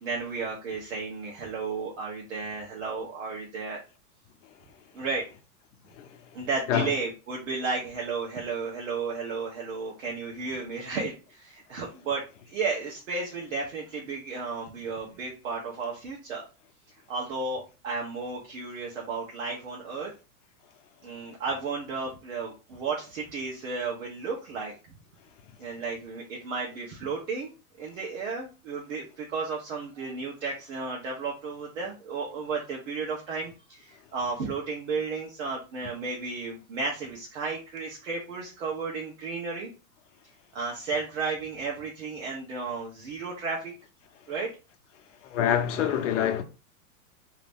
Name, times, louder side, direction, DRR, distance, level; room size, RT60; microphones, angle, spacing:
voice 1, 0.0-3.8 4.9-5.2 6.3-16.4 17.1-20.1 21.0-25.0 25.6-27.5 27.8-39.7 40.5-43.7 44.3-44.5, right 4 dB, 55° right, 1.0 m, -33 dB
voice 2, 45.2-46.4, left 9 dB, 55° left, 0.7 m, -26 dB
2.9 x 2.6 x 3.5 m
supercardioid pair, 175°, 44 cm